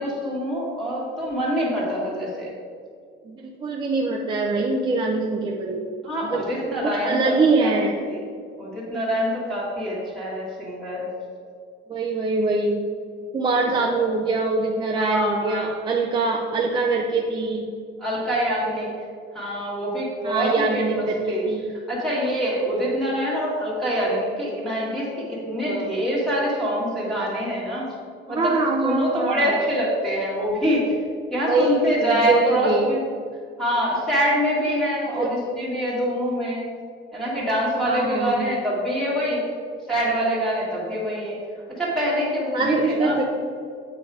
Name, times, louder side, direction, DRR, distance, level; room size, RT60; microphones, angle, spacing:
voice 1, 0.0-2.5 6.0-8.2 8.6-11.1 13.7-13.8 15.0-15.8 18.0-18.9 19.3-21.4 21.9-27.9 28.3-30.9 31.3-33.0 33.6-36.7 37.1-39.5 39.9-41.4 41.8-43.2, equal, ahead, -8 dB, 1.7 m, -25 dB
voice 2, 3.3-5.8 6.3-6.4 6.8-7.9 11.9-12.8 13.3-17.7 20.2-21.7 25.7-25.9 28.3-29.5 31.5-32.9 35.1-35.3 37.9-38.5 42.5-43.2, right 3 dB, 20° right, -1 dB, 0.5 m, -23 dB
8.1 x 5.3 x 4.8 m, 2.2 s
cardioid pair, 180°, 21 cm